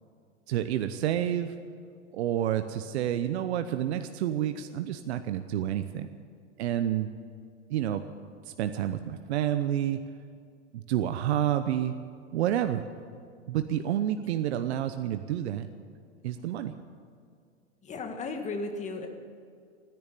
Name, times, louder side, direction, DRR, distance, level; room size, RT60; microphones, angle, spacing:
voice 1, 0.5-1.5 2.1-6.1 6.6-7.1 7.7-8.0 8.5-10.0 10.7-11.9 12.3-12.8 13.5-15.7 16.2-16.7, right 11 dB, 70° right, 9 dB, 0.9 m, -29 dB
voice 2, 17.8-19.1, left 3 dB, 20° left, 5 dB, 1.9 m, -35 dB
15.5 x 10.5 x 8.5 m, 2.3 s
hypercardioid pair, 125°, 35 cm